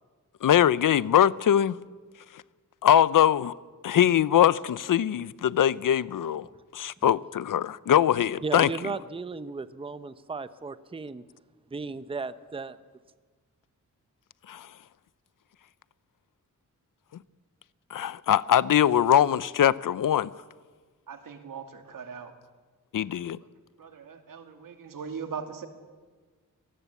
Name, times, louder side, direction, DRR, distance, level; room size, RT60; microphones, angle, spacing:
voice 1, 0.4-1.7 2.8-3.5 3.8-6.4 6.7-8.7 14.5-14.7 17.9-20.3 22.9-23.4, left 10 dB, 75° left, 0.7 m, -22 dB
voice 2, 8.4-11.2 11.7-12.8, right 4 dB, 15° right, 0.7 m, -35 dB
voice 3, 21.1-22.3 23.8-25.7, right 6 dB, 85° right, 2.5 m, -40 dB
26.0 x 18.5 x 8.3 m
wide cardioid pair, 165°, 32 cm